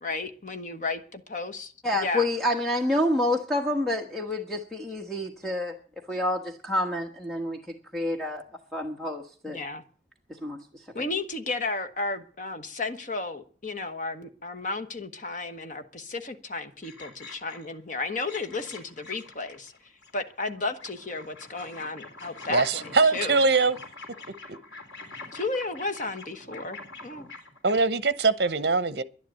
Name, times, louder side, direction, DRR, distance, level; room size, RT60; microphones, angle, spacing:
voice 1, 0.0-2.3 9.5-9.8 10.9-19.7 20.1-23.4 25.3-26.8 27.0-27.3, left 3 dB, 45° left, 1.2 m, -33 dB
voice 2, 1.8-5.7 6.1-8.4 8.7-9.6 10.4-10.6, left 1 dB, ahead, 1.3 m, -28 dB
sound 1, 16.8-17.8 18.1-20.5 20.8-27.8, left 3 dB, 85° left, 3.3 m, -45 dB
voice 3, 22.5-23.8 24.5-24.6 27.6-29.0, right 4 dB, 65° right, 0.9 m, -22 dB
11.0 x 10.5 x 9.0 m
head